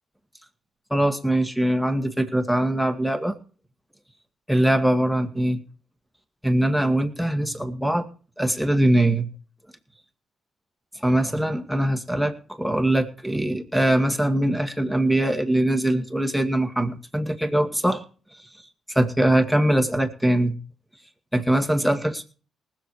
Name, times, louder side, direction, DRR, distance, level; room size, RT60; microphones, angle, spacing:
voice 1, 0.9-3.3 4.5-5.6 6.4-8.1 8.4-9.3 10.9-18.0 18.4-18.5 18.9-20.5 21.3-22.2, right 1 dB, ahead, 7 dB, 2.1 m, -22 dB
19.5 x 7.4 x 4.7 m, 0.38 s
cardioid pair, 90°, 0 cm